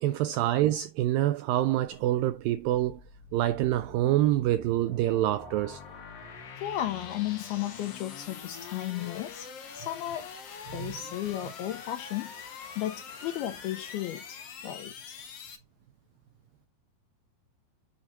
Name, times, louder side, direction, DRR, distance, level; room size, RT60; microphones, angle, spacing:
voice 1, 0.0-3.0 3.3-5.8 10.8-10.9, right 14 dB, 90° right, 2.0 m, -26 dB
sound 1, 1.9-15.6, left 6 dB, 55° left, 1.8 m, -45 dB
voice 2, 6.6-10.3 10.7-15.2, left 13 dB, 80° left, 2.7 m, -35 dB
8.4 x 4.1 x 3.8 m
omnidirectional pair, 4.6 m